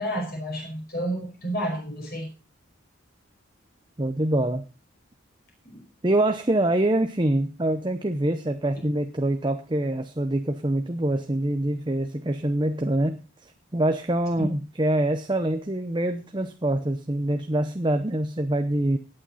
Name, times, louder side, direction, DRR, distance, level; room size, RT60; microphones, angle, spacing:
voice 1, 0.0-2.3 5.7-5.8 14.4-14.5, right 1 dB, 45° left, 1 dB, 5.0 m, -30 dB
voice 2, 4.0-4.7 6.0-13.2 13.7-19.0, right 1 dB, 20° right, 7 dB, 0.8 m, -25 dB
17.5 x 8.9 x 4.1 m, 0.30 s
head